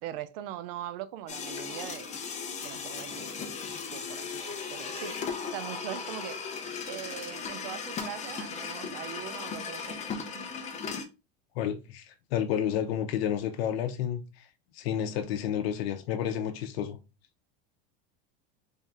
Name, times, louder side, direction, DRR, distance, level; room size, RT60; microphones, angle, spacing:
voice 1, 0.0-2.1 2.6-3.4 3.9-5.2 5.5-6.4 6.9-10.0 10.3-10.5, right 12 dB, 60° right, 0.5 m, -41 dB
sound 1, 1.3-11.0, left 5 dB, 25° left, 0.6 m, -37 dB
voice 2, 11.6-14.2 14.8-17.0, left 9 dB, 75° left, 0.7 m, -30 dB
3.4 x 2.6 x 3.4 m
supercardioid pair, 135°, 31 cm